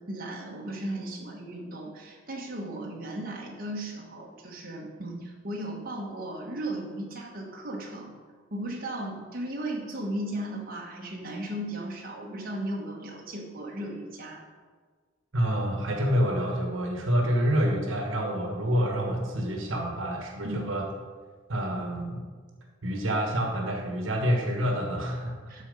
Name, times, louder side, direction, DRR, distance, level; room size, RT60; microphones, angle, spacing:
voice 1, 0.0-8.2 8.5-14.4 20.4-20.7 25.5-25.6, right 1 dB, 50° right, -2 dB, 1.3 m, -36 dB
voice 2, 15.3-20.8 21.5-22.2 22.8-25.6, equal, 80° right, 1 dB, 1.4 m, -27 dB
12.5 x 4.4 x 5.2 m, 1.5 s
head